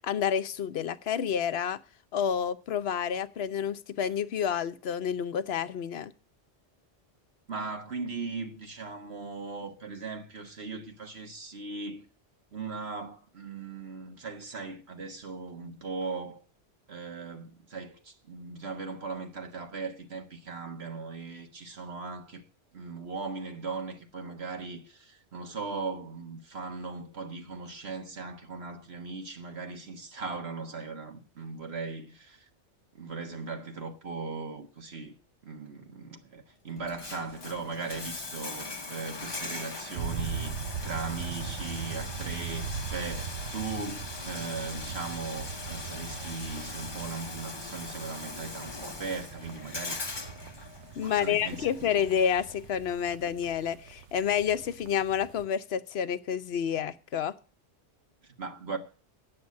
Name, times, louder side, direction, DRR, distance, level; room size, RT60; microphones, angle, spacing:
voice 1, 0.0-1.8 2.1-6.1 51.0-57.3, left 8 dB, 65° left, 1.0 m, -29 dB
voice 2, 7.5-12.1 12.5-16.4 16.9-22.5 22.7-32.5 33.0-35.2 35.4-50.0 51.0-51.7 58.4-58.8, right 4 dB, 65° right, 1.7 m, -38 dB
Bathtub (filling or washing), 36.8-52.7, left 3 dB, 25° left, 0.9 m, -41 dB
sound 1, 40.0-55.4, right 6 dB, 85° right, 1.1 m, -40 dB
9.6 x 7.9 x 9.5 m
omnidirectional pair, 1.2 m